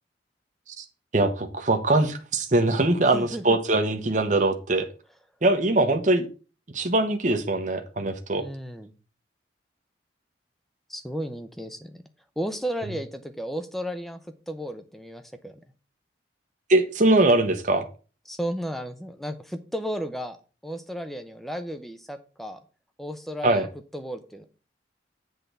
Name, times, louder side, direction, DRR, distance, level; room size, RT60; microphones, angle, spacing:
voice 1, 1.1-4.9 5.4-6.3 6.7-8.5 16.7-17.9 23.4-23.7, right 2 dB, 40° right, 5 dB, 0.9 m, -22 dB
voice 2, 3.1-3.6 8.4-8.9 10.9-12.0 12.4-14.2 14.5-15.6 18.3-20.4 20.6-22.6 23.0-24.4, equal, ahead, 8 dB, 0.7 m, -34 dB
8.0 x 3.8 x 6.6 m, 0.35 s
head